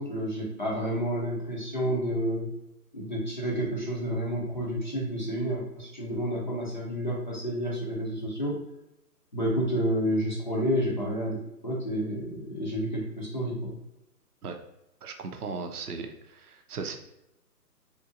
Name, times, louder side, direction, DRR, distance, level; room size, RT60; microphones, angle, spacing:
voice 1, 0.0-2.5 2.9-8.7 9.3-13.8, equal, 30° left, -5 dB, 0.5 m, -30 dB
voice 2, 15.0-17.0, right 4 dB, 65° right, 5 dB, 0.6 m, -37 dB
3.7 x 2.9 x 2.5 m, 0.88 s
hypercardioid pair, 160°, 48 cm